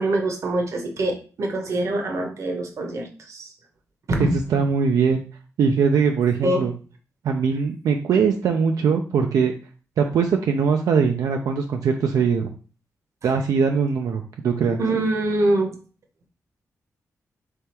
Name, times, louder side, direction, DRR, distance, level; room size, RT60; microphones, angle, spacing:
voice 1, 0.0-3.5 4.1-4.4 6.4-6.7 14.8-15.7, right 1 dB, 60° right, 1.0 m, -24 dB
voice 2, 4.2-5.2 5.6-6.7 7.2-9.5 10.0-12.5 13.2-14.8, right 6 dB, 85° right, 0.5 m, -21 dB
3.5 x 3.4 x 4.3 m
wide cardioid pair, 115°, 6 cm